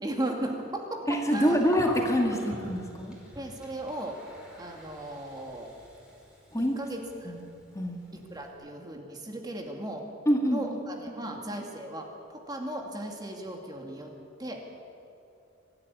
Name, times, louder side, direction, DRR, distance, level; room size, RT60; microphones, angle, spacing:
voice 1, 0.0-1.6 3.4-4.2 4.5-5.7 6.6-7.4 8.1-10.1 10.5-14.1 14.4-14.6, right 1 dB, 20° right, 2 dB, 2.3 m, -36 dB
voice 2, 1.1-3.1 6.5-6.8 7.3-7.4 7.7-8.1 10.3-10.6, equal, 15° left, 2 dB, 2.1 m, -26 dB
Gurgling, 1.3-8.5, equal, 5° right, 4.9 m, -47 dB
24.0 x 14.0 x 9.8 m, 2.7 s
head